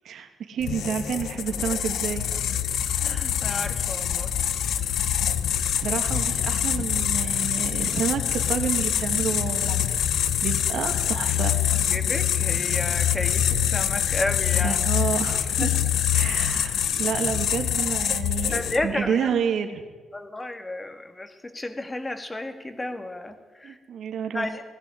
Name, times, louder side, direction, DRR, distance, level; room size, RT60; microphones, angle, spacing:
voice 1, 0.0-2.3 5.8-9.8 10.4-11.6 14.6-15.7 16.1-18.5 18.8-19.8 23.6-24.5, right 7 dB, 75° right, 6 dB, 2.8 m, -29 dB
sound 1, 0.6-19.0, left 10 dB, 80° left, 1.2 m, -25 dB
voice 2, 3.0-4.4 4.6-5.3 11.9-14.9 15.6-15.7 17.0-17.1 18.5-19.3 20.1-23.8 24.3-24.6, left 2 dB, 15° left, 8 dB, 2.2 m, -32 dB
20.0 x 16.5 x 9.8 m, 1.3 s
cardioid pair, 130°, 0 cm